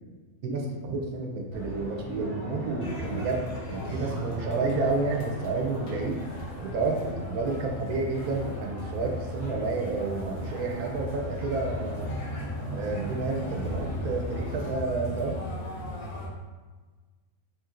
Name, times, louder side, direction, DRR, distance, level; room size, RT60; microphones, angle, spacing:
voice 1, 0.4-3.4 3.7-6.2 6.6-12.1 12.7-15.4, right 3 dB, 85° right, 1 dB, 1.1 m, -30 dB
sound 1, 1.5-14.7, equal, 45° left, 1.4 m, -41 dB
sound 2, 2.8-16.3, left 1 dB, 90° left, 1.3 m, -37 dB
4.3 x 3.3 x 2.5 m, 1.3 s
omnidirectional pair, 1.5 m